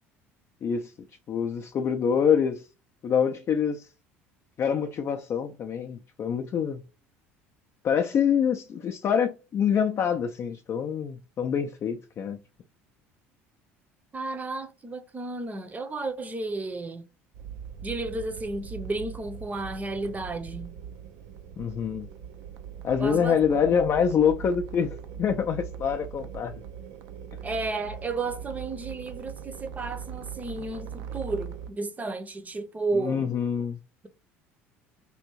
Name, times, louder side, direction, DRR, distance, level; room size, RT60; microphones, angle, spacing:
voice 1, 0.6-0.9 1.3-2.6 3.0-3.9 4.6-6.8 7.8-12.4 21.6-22.1 22.8-26.5 32.9-33.8, left 7 dB, 40° left, 0.4 m, -26 dB
voice 2, 14.1-17.1 17.8-20.7 23.0-23.3 27.4-33.3, right 3 dB, 25° right, 0.7 m, -33 dB
sound 1, 17.3-31.7, right 8 dB, 65° right, 0.4 m, -41 dB
3.4 x 2.6 x 3.0 m
hypercardioid pair, 70°, 7 cm